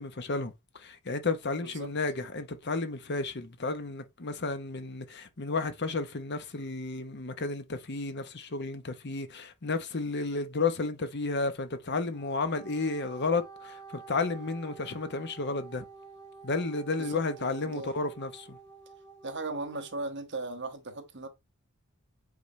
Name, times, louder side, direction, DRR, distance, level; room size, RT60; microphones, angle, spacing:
voice 1, 0.0-15.8 16.4-18.6, left 3 dB, 50° left, 1.0 m, -32 dB
voice 2, 1.6-1.9 17.0-17.9 19.2-21.3, right 2 dB, 50° right, 1.2 m, -38 dB
Wind instrument woodwind instrument, 12.1-20.1, right 5 dB, 15° left, 1.0 m, -50 dB
8.3 x 4.1 x 3.2 m
head